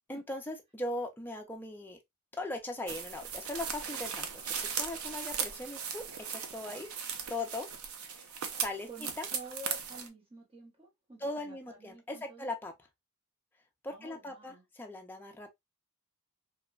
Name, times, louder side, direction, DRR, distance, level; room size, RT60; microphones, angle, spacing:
voice 1, 0.1-2.0 2.4-6.9 7.3-7.7 8.1-8.9 9.2-9.3 11.2-12.7 13.8-15.5, left 2 dB, 10° left, 0.4 m, -39 dB
sound 1, 2.9-10.1, right 7 dB, 75° right, 0.5 m, -38 dB
voice 2, 8.5-12.5 13.9-14.6, right 1 dB, 25° right, 0.8 m, -50 dB
2.9 x 2.1 x 2.2 m
head